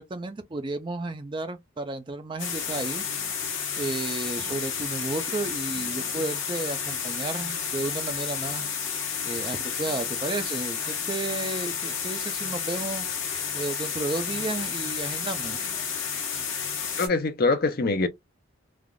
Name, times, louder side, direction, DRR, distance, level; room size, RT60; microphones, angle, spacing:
voice 1, 0.0-3.0 3.8-8.7 9.2-13.1 13.5-15.7, right 2 dB, 20° right, 0.4 m, -33 dB
sound 1, 2.4-17.1, left 7 dB, 60° left, 1.0 m, -31 dB
voice 2, 17.0-18.1, left 3 dB, 45° left, 0.5 m, -23 dB
3.3 x 2.4 x 2.3 m
head